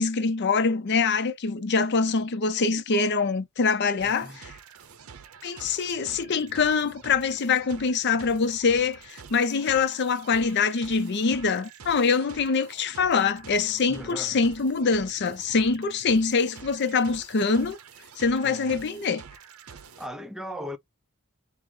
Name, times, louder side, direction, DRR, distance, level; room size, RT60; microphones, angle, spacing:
voice 1, 0.0-4.5 5.4-17.8 18.2-19.2, left 4 dB, 55° left, 0.5 m, -24 dB
voice 2, 4.0-4.4 13.9-14.4 18.4-18.8 20.0-20.8, equal, 5° right, 0.4 m, -38 dB
sound 1, 4.0-20.1, right 6 dB, 85° right, 0.7 m, -48 dB
4.6 x 2.0 x 3.7 m
head